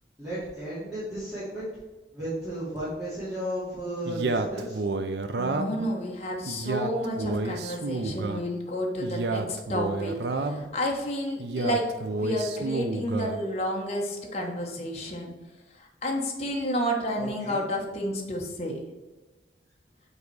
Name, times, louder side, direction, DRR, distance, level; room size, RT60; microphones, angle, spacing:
voice 1, 0.2-1.7 2.1-4.8 17.2-17.6, right 1 dB, 5° right, -14 dB, 2.4 m, -34 dB
Male speech man speaking, 4.0-5.9 6.4-8.4 9.0-10.7 11.4-13.4, right 2 dB, 75° right, 0.6 m, -30 dB
voice 2, 5.4-11.9 12.1-15.3 15.7-18.8, equal, 35° left, -1 dB, 1.2 m, -31 dB
7.2 x 4.0 x 4.7 m, 1.1 s
head